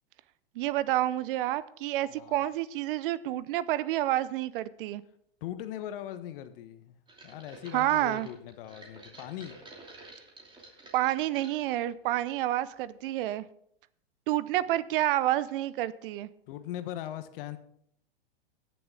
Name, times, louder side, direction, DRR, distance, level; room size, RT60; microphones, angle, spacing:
voice 1, 0.6-5.0 7.7-8.3 10.9-13.4 14.3-16.3, right 14 dB, 60° right, 0.7 m, -29 dB
voice 2, 2.1-2.4 5.4-7.0 7.2-9.5 16.5-17.6, left 11 dB, 60° left, 1.3 m, -40 dB
sound 1, 7.1-11.6 12.1-12.6 12.9-13.0, right 2 dB, 15° right, 2.9 m, -51 dB
19.0 x 6.9 x 3.8 m
hypercardioid pair, 110°, 31 cm